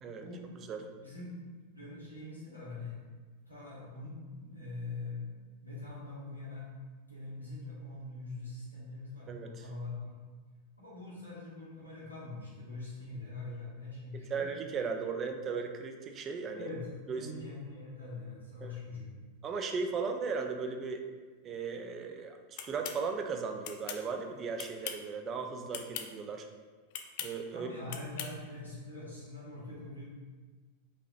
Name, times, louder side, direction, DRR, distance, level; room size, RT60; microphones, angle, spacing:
voice 1, 0.2-3.0 3.5-5.2 5.6-6.7 7.1-10.1 10.8-14.5 16.5-19.1 27.5-30.1, left 2 dB, 90° left, -9 dB, 1.4 m, -43 dB
voice 2, 9.3-9.7 14.3-16.7 17.1-17.3 18.6-18.7 19.4-21.0 21.4-26.5 27.2-27.7, right 5 dB, 30° right, 5 dB, 0.4 m, -36 dB
sound 1, 22.6-23.0 23.6-24.0 24.6-25.1 25.7-26.1 26.9-27.3 27.9-28.3, left 9 dB, 50° left, 0.3 m, -40 dB
5.0 x 2.9 x 2.5 m, 1.4 s
figure-of-eight pair, 90°, 0 cm